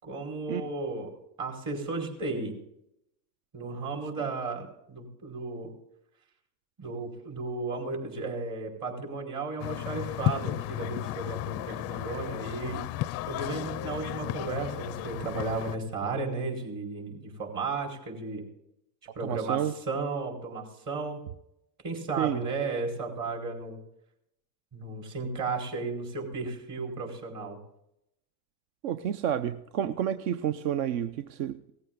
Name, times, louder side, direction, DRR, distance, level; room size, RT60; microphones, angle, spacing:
voice 1, 0.0-1.1 1.4-2.6 3.5-5.7 6.8-18.5 19.2-21.2 21.8-23.8 24.7-27.6, right 3 dB, 40° right, 0 dB, 5.2 m, -34 dB
sound 1, 9.6-15.8, left 16 dB, 35° left, 0.4 m, -34 dB
voice 2, 19.2-19.7 22.2-22.4 28.8-31.6, right 10 dB, 55° right, 12 dB, 0.8 m, -30 dB
19.0 x 14.5 x 3.9 m, 0.81 s
hypercardioid pair, 105°, 49 cm